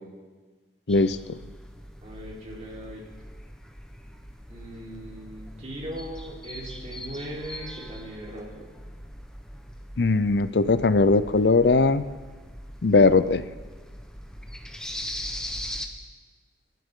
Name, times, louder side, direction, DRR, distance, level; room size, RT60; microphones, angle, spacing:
sound 1, 0.9-15.9, equal, 5° left, 1.0 m, -41 dB
voice 1, 2.0-3.0 4.5-8.6, right 1 dB, 40° right, -4 dB, 3.9 m, -39 dB
voice 2, 10.0-12.0 12.8-13.4, left 3 dB, 65° left, 14 dB, 0.6 m, -19 dB
24.0 x 12.5 x 3.8 m, 1.4 s
head